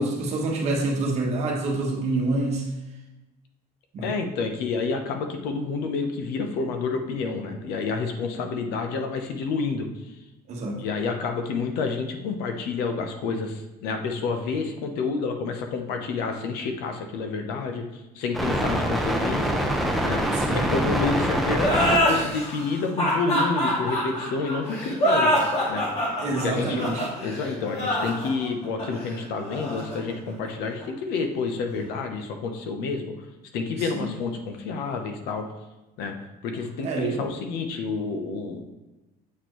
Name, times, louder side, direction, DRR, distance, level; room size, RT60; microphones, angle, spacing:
voice 1, 0.0-2.7 3.9-4.1 10.5-10.8 20.3-20.7 26.2-27.1 33.7-34.1 36.8-37.3, right 2 dB, 40° right, 0 dB, 1.1 m, -27 dB
voice 2, 4.0-10.1 10.7-19.6 20.0-25.3 25.7-25.8 26.3-26.9 27.2-33.1 33.5-35.5 36.0-36.1 36.4-38.6, left 4 dB, 85° left, 5 dB, 0.8 m, -29 dB
sound 1, 18.3-22.0 23.1-23.2 24.0-24.7 25.5-28.4, equal, ahead, 0.5 m, -26 dB
sound 2, 21.6-30.8, equal, 40° left, 1.9 m, -25 dB
7.4 x 4.4 x 3.1 m, 1.0 s
cardioid pair, 175°, 16 cm